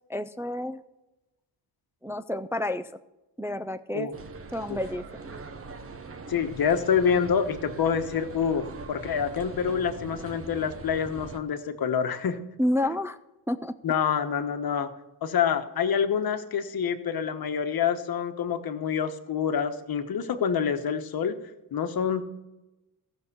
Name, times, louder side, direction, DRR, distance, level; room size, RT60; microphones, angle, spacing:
voice 1, 0.1-0.8 2.0-2.9 3.4-4.1 4.5-5.0 12.6-13.2 13.5-13.7, left 1 dB, 5° right, 10 dB, 0.3 m, -29 dB
sound 1, 4.1-11.4, right 4 dB, 30° right, 1.0 m, -42 dB
voice 2, 6.3-12.4 13.8-14.9 15.2-21.4 21.7-22.2, left 7 dB, 55° left, 9 dB, 1.2 m, -27 dB
14.5 x 6.5 x 6.8 m, 1.0 s
cardioid pair, 110°, 44 cm